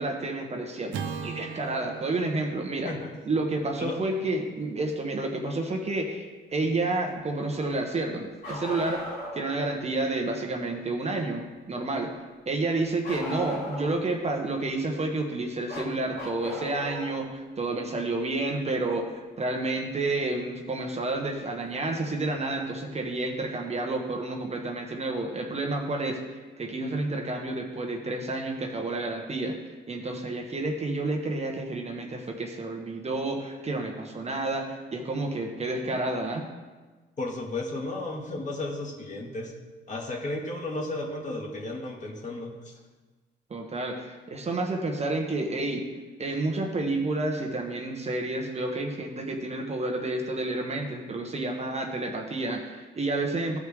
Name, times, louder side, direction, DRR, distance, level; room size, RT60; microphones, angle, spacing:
voice 1, 0.0-2.9 3.2-9.0 9.3-12.2 12.5-29.6 29.9-36.5 43.5-45.8 46.2-53.6, right 2 dB, 35° right, 2 dB, 1.2 m, -30 dB
Acoustic guitar / Strum, 0.9-5.3, right 6 dB, 80° right, 0.8 m, -41 dB
Bark, 8.4-9.5 13.0-14.1 15.7-17.2 18.9-19.0 20.9-21.0 22.1-22.2, left 1 dB, 55° left, 2.9 m, -37 dB
voice 2, 37.2-39.6 39.9-42.7, left 2 dB, 40° left, -1 dB, 1.9 m, -34 dB
14.0 x 4.8 x 3.5 m, 1.3 s
cardioid pair, 90°, 20 cm